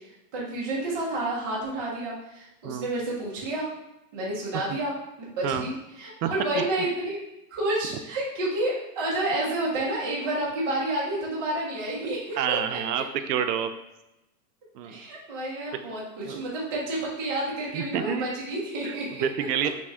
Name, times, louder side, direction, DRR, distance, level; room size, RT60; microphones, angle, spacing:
voice 1, 0.3-3.7 4.1-7.2 7.5-12.8 14.8-19.3, right 1 dB, 15° right, -6 dB, 0.4 m, -30 dB
voice 2, 12.4-13.7 14.7-15.0 15.7-15.8 16.3-16.4 17.7-18.3 18.8-18.9 19.2-19.7, right 9 dB, 75° right, 8 dB, 0.6 m, -28 dB
5.9 x 2.1 x 3.6 m, 0.92 s
supercardioid pair, 165°, 48 cm